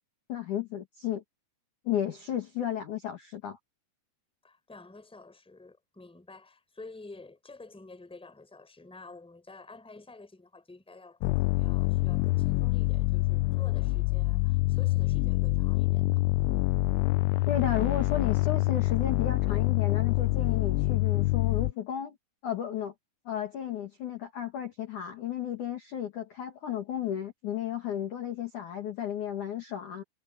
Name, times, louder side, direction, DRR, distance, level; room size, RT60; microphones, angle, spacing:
voice 1, 0.3-1.2 1.8-3.6 17.5-22.2 22.4-22.9 23.3-30.0, left 10 dB, 50° left, 2.7 m, -33 dB
voice 2, 4.4-16.2, left 3 dB, ahead, 3.4 m, -50 dB
sound 1, 11.2-21.7, left 19 dB, 85° left, 3.0 m, -26 dB
omnidirectional pair, 6.0 m